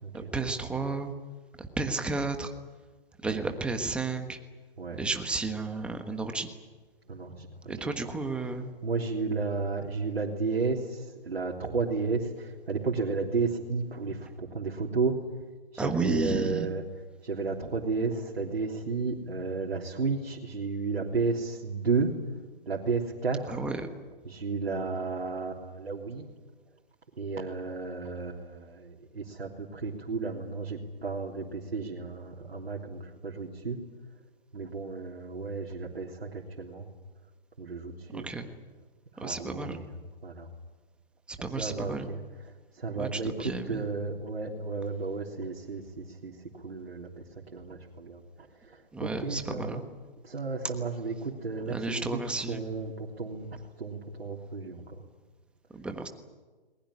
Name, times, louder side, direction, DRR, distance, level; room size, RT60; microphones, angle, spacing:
voice 1, 0.1-1.1 1.6-2.5 3.2-4.4 5.0-6.5 7.7-8.7 15.8-16.7 23.5-23.9 38.1-38.5 39.2-39.8 41.3-42.1 42.9-43.9 48.9-49.8 51.7-52.6 55.7-56.1, right 3 dB, 5° right, 6 dB, 1.3 m, -32 dB
voice 2, 7.1-7.7 8.8-15.2 15.7-16.8 17.2-22.2 22.6-23.6 24.2-26.3 27.2-33.8 34.5-36.9 37.6-38.3 39.1-39.9 40.2-40.5 41.5-42.2 42.7-47.3 47.5-49.8 50.2-52.2 52.5-53.5 53.8-55.0, right 4 dB, 85° right, -1 dB, 3.5 m, -33 dB
21.0 x 20.5 x 9.9 m, 1.3 s
hypercardioid pair, 150°, 30 cm